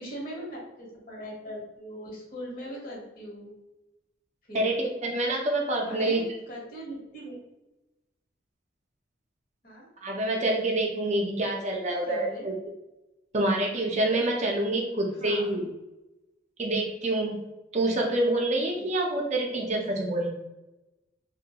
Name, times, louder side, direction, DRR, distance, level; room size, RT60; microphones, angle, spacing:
voice 1, 0.0-3.6 4.5-4.7 5.8-7.3 9.6-9.9 12.0-12.5 15.2-15.6 18.7-18.9, equal, 50° left, -3 dB, 1.0 m, -40 dB
voice 2, 4.5-6.2 10.0-12.5 13.3-15.7 16.6-17.5 17.7-20.3, right 1 dB, 40° right, 0 dB, 0.4 m, -27 dB
3.0 x 2.2 x 2.8 m, 0.98 s
head